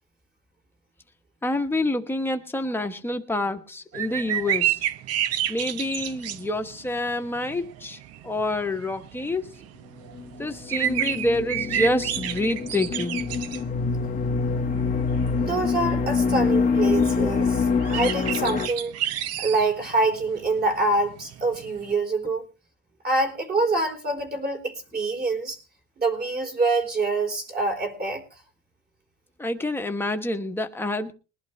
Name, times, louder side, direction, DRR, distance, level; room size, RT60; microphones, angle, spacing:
voice 1, 1.4-4.8 5.5-9.6 10.4-13.2 29.4-31.1, left 1 dB, 5° left, 1.2 m, -27 dB
sound 1, 3.9-21.9, right 11 dB, 55° right, 0.8 m, -32 dB
sound 2, 10.1-18.7, left 5 dB, 25° left, 0.9 m, -25 dB
voice 2, 15.3-18.9 19.4-22.5 23.0-25.6 26.0-28.2, right 3 dB, 35° right, 4.0 m, -25 dB
21.0 x 11.5 x 3.2 m
cardioid pair, 145°, 30 cm